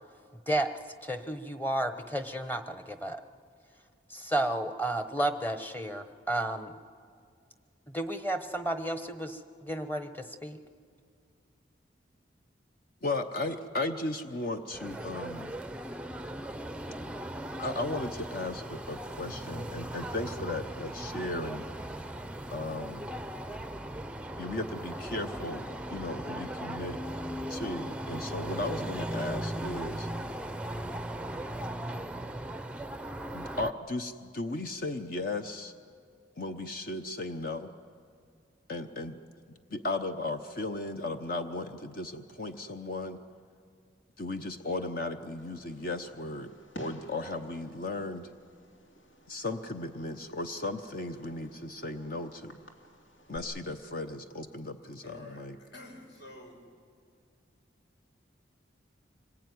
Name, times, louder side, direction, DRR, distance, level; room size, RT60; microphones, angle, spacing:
voice 1, 1.0-3.2 4.1-6.7 7.9-10.6, right 1 dB, 10° left, 9 dB, 1.0 m, -32 dB
voice 2, 13.0-15.6 17.6-21.6 22.5-23.1 24.4-27.0 27.5-30.1 33.3-35.7 36.4-37.7 38.7-39.2 39.7-43.2 44.2-46.5 46.7-48.3 49.3-52.6 53.3-55.6, left 2 dB, 50° left, 8 dB, 0.8 m, -36 dB
sound 1, 14.7-33.7, right 1 dB, 5° right, 0.5 m, -38 dB
Fireworks, 45.4-53.4, equal, 80° left, 2.8 m, -53 dB
voice 3, 55.0-56.7, left 2 dB, 65° left, 3 dB, 4.9 m, -48 dB
25.5 x 20.0 x 9.5 m, 2.3 s
head